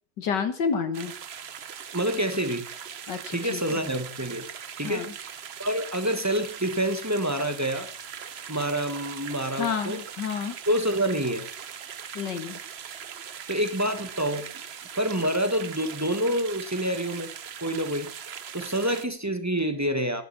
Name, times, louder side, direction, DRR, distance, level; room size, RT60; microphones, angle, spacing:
voice 1, 0.2-1.1 3.1-3.8 4.8-5.1 9.6-10.6 12.1-12.6, left 6 dB, 70° left, 8 dB, 2.0 m, -30 dB
sound 1, 0.9-19.1, right 8 dB, 50° right, 0.8 m, -40 dB
voice 2, 1.9-2.7 3.3-4.4 4.8-5.0 5.6-7.9 8.5-10.0 10.7-11.5 13.5-14.5 14.9-17.3 17.6-18.1 18.5-20.2, right 1 dB, 10° right, 8 dB, 1.3 m, -27 dB
12.5 x 11.0 x 5.9 m, 0.40 s
omnidirectional pair, 1.9 m